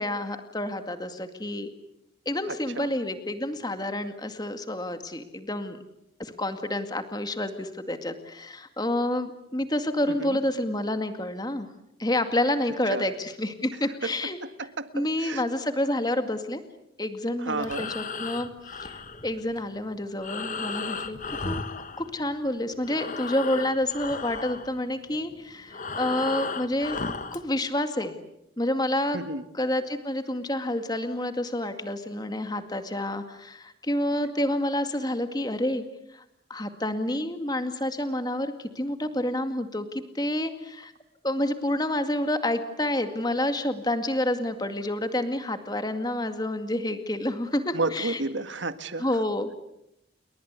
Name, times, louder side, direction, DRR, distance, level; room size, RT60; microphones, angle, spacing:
voice 1, 0.0-1.7 2.3-5.8 6.2-11.7 12.0-14.4 14.9-16.6 17.0-18.9 19.2-21.2 21.4-21.6 22.0-27.0 27.3-28.1 28.6-29.2 29.5-35.8 36.1-36.2 36.5-40.9 41.2-48.2 49.0-49.5, left 1 dB, 20° left, 8 dB, 2.1 m, -29 dB
voice 2, 2.5-2.9 10.1-10.4 12.9-13.0 14.0-14.1 14.4-15.4 17.4-17.9 29.1-29.4 47.7-49.1, right 3 dB, 80° right, 11 dB, 1.8 m, -31 dB
Breathing, 17.5-22.5 22.8-27.5, left 4 dB, 40° left, 1.5 m, -35 dB
29.5 x 23.0 x 8.3 m, 0.81 s
head